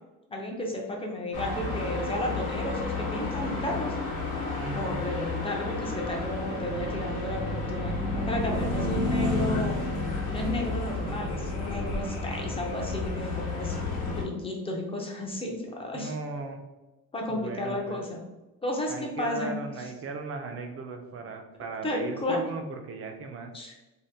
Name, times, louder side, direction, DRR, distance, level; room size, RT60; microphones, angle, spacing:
voice 1, 0.3-4.0 4.2-9.8 10.3-13.8 14.1-16.1 17.1-18.2 18.6-19.6 21.8-22.4 23.5-23.7, left 1 dB, 15° left, 1 dB, 0.4 m, -33 dB
sound 1, 1.3-14.2, left 2 dB, 60° left, 0.9 m, -31 dB
voice 2, 4.6-5.1 15.9-16.6 17.3-18.0 18.9-23.5, right 3 dB, 40° right, 5 dB, 0.4 m, -37 dB
2.7 x 2.2 x 3.3 m, 1.0 s
cardioid pair, 135°, 34 cm